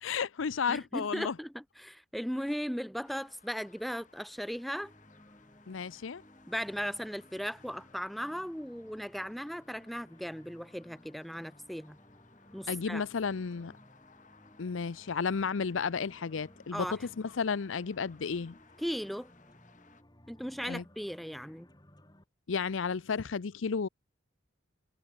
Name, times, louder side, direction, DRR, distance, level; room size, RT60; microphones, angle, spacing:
voice 1, 0.0-1.3 5.7-6.2 12.7-13.7 14.6-18.5 20.7-20.8 22.5-23.9, left 5 dB, 75° left, 0.6 m, -33 dB
voice 2, 0.7-4.9 6.5-12.0 12.5-13.1 16.7-17.1 18.8-19.3 20.3-21.7, equal, ahead, 0.4 m, -37 dB
sound 1, 3.0-20.0, left 4 dB, 40° left, 3.4 m, -63 dB
sound 2, 4.8-22.2, left 1 dB, 20° left, 3.2 m, -59 dB
head